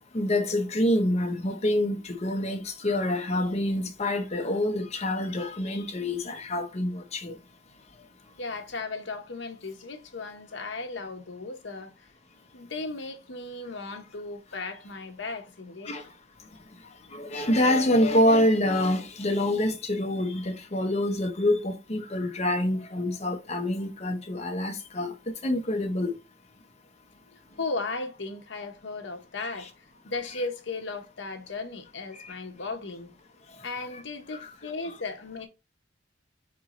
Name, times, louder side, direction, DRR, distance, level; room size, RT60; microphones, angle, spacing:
voice 1, 0.1-7.4 15.8-16.0 17.1-25.1 25.4-26.2 32.1-32.3 34.4-34.5, left 1 dB, 35° left, 0.9 m, -26 dB
voice 2, 8.4-12.1 12.5-16.1 27.3-29.7 30.0-33.1 33.6-35.5, left 3 dB, 70° left, 1.0 m, -36 dB
4.5 x 3.1 x 3.8 m
head